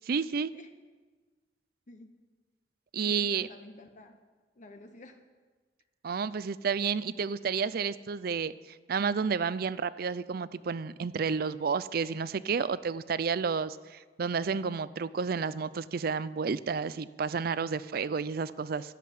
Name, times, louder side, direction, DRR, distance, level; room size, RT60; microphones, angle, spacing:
voice 1, 0.1-0.5 2.9-3.5 6.0-8.5 8.9-18.8, right 5 dB, 55° right, 17 dB, 0.5 m, -31 dB
voice 2, 3.0-4.2 4.5-5.2, left 2 dB, 45° left, 6 dB, 0.9 m, -50 dB
11.5 x 7.6 x 8.7 m, 1.4 s
head